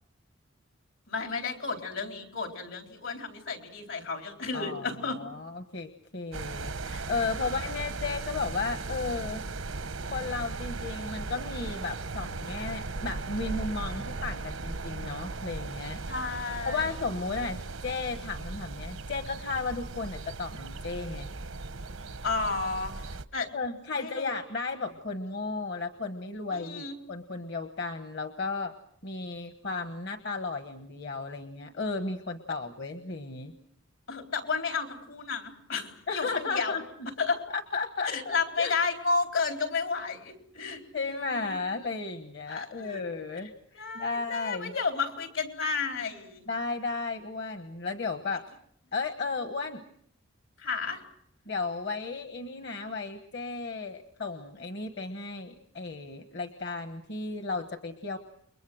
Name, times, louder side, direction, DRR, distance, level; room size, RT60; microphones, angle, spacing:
voice 1, 1.1-5.2 6.9-7.1 7.4-7.6 16.1-16.9 22.2-22.9 23.3-23.5 24.0-24.3 26.5-27.0 34.1-36.8 37.2-37.4 38.0-40.8 41.3-41.6 42.5-43.0 43.7-46.4 50.6-51.0, left 4 dB, 80° left, 4 dB, 4.1 m, -32 dB
voice 2, 4.5-9.4 10.1-16.0 16.6-21.3 23.5-28.7 29.0-33.5 36.1-36.8 37.5-38.8 40.6-43.5 43.9-44.7 46.5-48.5 48.9-49.8 51.5-58.2, left 4 dB, 55° left, 7 dB, 1.2 m, -34 dB
sound 1, 6.3-23.2, right 3 dB, 90° right, 1.0 m, -37 dB
30.0 x 23.0 x 6.4 m, 0.67 s
head